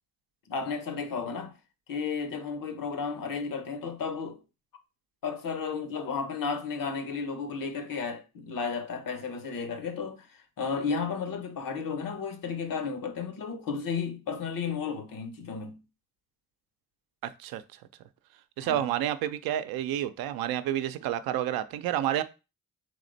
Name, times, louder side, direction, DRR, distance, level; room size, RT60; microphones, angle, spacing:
voice 1, 0.5-1.6 1.9-4.4 5.2-15.8 18.6-18.8, left 5 dB, 70° left, 1.0 m, -33 dB
voice 2, 17.2-17.6 18.6-22.2, right 11 dB, 85° right, 0.5 m, -29 dB
3.6 x 3.2 x 3.9 m
supercardioid pair, 50°, 35 cm